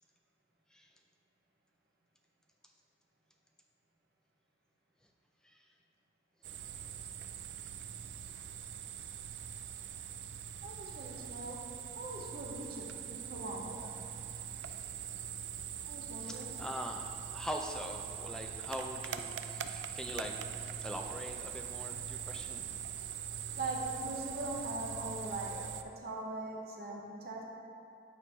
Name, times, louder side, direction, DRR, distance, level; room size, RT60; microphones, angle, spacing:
sound 1, 6.4-25.8, right 8 dB, 80° right, 0.3 m, -42 dB
voice 1, 10.6-11.6 11.9-13.9 15.8-16.5 23.5-27.4, right 2 dB, 60° right, -1 dB, 0.9 m, -41 dB
voice 2, 16.2-22.7, equal, 5° left, 2 dB, 0.4 m, -43 dB
8.3 x 4.6 x 3.4 m, 2.5 s
head